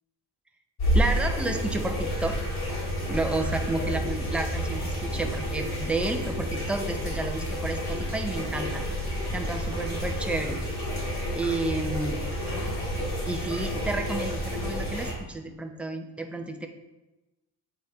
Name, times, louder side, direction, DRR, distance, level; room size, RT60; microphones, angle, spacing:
sound 1, 0.8-15.1, equal, 65° left, 2.3 m, -30 dB
voice 1, 0.9-2.4 3.1-8.8 9.3-10.6 11.3-12.2 13.3-16.7, right 2 dB, 5° right, 4 dB, 0.4 m, -31 dB
8.0 x 4.0 x 4.2 m, 1.1 s
cardioid pair, 140°, 40 cm